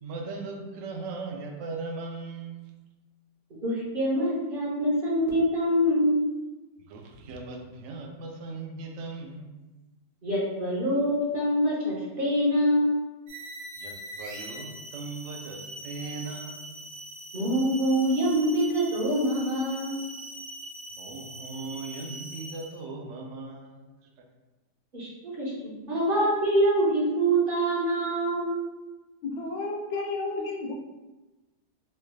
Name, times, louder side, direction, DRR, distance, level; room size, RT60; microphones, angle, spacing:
voice 1, 0.0-2.7 6.8-9.6 13.8-16.8 20.9-23.9, right 3 dB, 90° right, 1 dB, 0.6 m, -38 dB
voice 2, 3.6-6.3 10.2-13.0 17.3-20.0 24.9-25.1 25.4-28.5, equal, 40° right, -7 dB, 0.8 m, -25 dB
sound 1, 13.3-22.8, right 1 dB, 70° right, 1.1 m, -42 dB
voice 3, 29.2-30.8, left 3 dB, 75° left, 0 dB, 0.6 m, -32 dB
3.3 x 3.2 x 2.3 m, 1.1 s
omnidirectional pair, 1.8 m